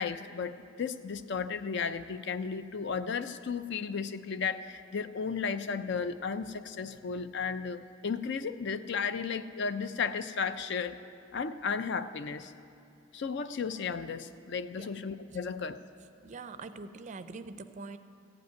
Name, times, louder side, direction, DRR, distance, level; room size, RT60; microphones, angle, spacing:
voice 1, 0.0-11.0 11.3-12.5 13.1-15.8, left 5 dB, 55° left, 12 dB, 0.4 m, -34 dB
voice 2, 16.2-18.0, right 3 dB, 35° right, 11 dB, 0.4 m, -43 dB
15.0 x 5.3 x 9.1 m, 2.5 s
head